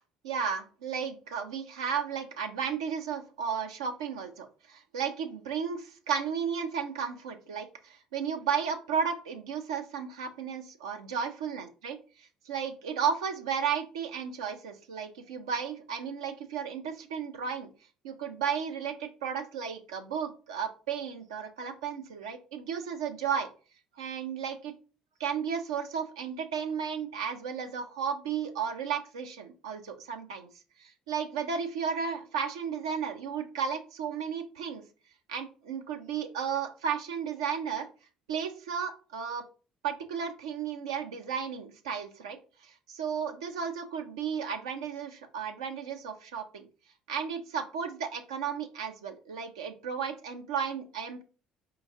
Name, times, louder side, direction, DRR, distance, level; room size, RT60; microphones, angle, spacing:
voice 1, 0.2-17.7 18.0-23.5 24.0-24.7 25.2-30.5 30.8-34.8 35.3-37.9 38.3-39.4 39.8-42.4 42.6-46.6 47.1-51.2, right 7 dB, 85° right, 5 dB, 0.5 m, -34 dB
4.3 x 3.1 x 3.5 m, 0.36 s
hypercardioid pair, 60°, 3 cm